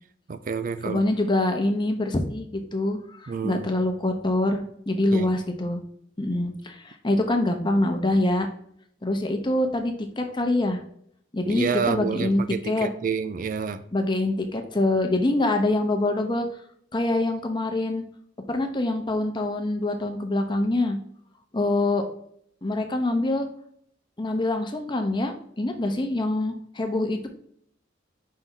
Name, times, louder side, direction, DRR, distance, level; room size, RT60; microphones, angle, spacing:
voice 1, 0.3-1.0 3.3-3.7 5.1-5.3 11.5-13.8, right 6 dB, 45° right, 0.4 m, -28 dB
voice 2, 0.8-5.8 6.2-8.5 9.0-10.8 11.3-12.9 13.9-16.5 16.9-18.0 18.5-21.0 21.5-22.0 22.6-23.5 24.2-27.3, left 2 dB, 25° left, 0.8 m, -25 dB
5.6 x 3.5 x 5.5 m
head